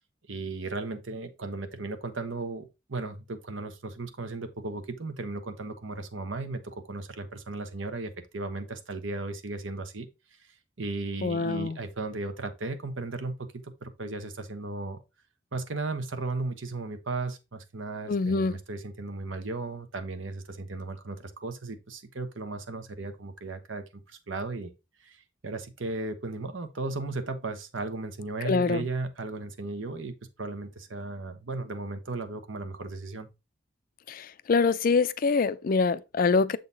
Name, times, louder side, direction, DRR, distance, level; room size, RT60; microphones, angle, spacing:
voice 1, 0.3-10.1 10.8-15.0 15.5-24.7 25.0-33.3, right 3 dB, 85° right, 1.0 m, -36 dB
voice 2, 11.2-11.8 18.1-18.6 28.4-28.9 34.1-36.6, left 4 dB, 45° left, 0.4 m, -25 dB
7.1 x 3.9 x 3.9 m
head